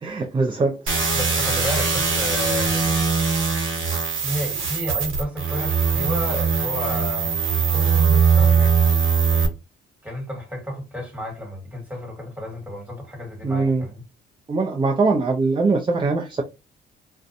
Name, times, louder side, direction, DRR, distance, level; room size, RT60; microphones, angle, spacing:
voice 1, 0.0-1.1 3.6-4.0 13.4-13.8 14.5-16.4, right 3 dB, 25° right, 0.5 m, -22 dB
sound 1, 0.9-9.5, right 5 dB, 85° right, 1.0 m, -21 dB
voice 2, 1.1-3.1 4.2-8.7 9.1-9.5 10.0-14.0, equal, 5° right, 1.5 m, -32 dB
2.5 x 2.2 x 2.5 m
cardioid pair, 90°, 20 cm